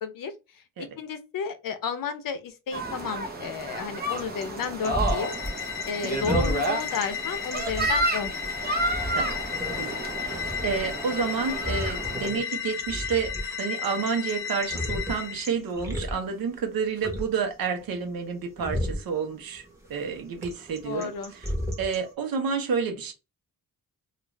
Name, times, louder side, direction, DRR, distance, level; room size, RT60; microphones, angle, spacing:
voice 1, 0.0-8.3 20.8-21.3, left 6 dB, 70° left, 0.7 m, -33 dB
sound 1, 2.7-12.3, right 2 dB, 25° right, 0.8 m, -31 dB
sound 2, 3.3-22.1, equal, 10° right, 1.1 m, -35 dB
sound 3, 5.0-15.5, left 8 dB, 35° left, 0.4 m, -34 dB
voice 2, 9.8-19.6 19.9-21.5 21.8-23.1, right 5 dB, 75° right, 0.9 m, -30 dB
2.5 x 2.4 x 3.1 m
cardioid pair, 115°, 35 cm